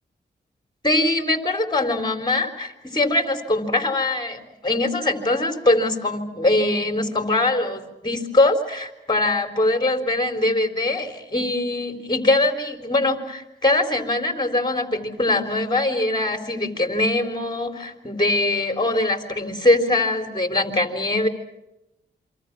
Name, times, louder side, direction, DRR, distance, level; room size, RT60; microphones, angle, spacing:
voice 1, 0.8-21.3, left 2 dB, 25° left, 5 dB, 3.9 m, -22 dB
27.0 x 25.0 x 6.0 m, 0.90 s
cardioid pair, 65°, 19 cm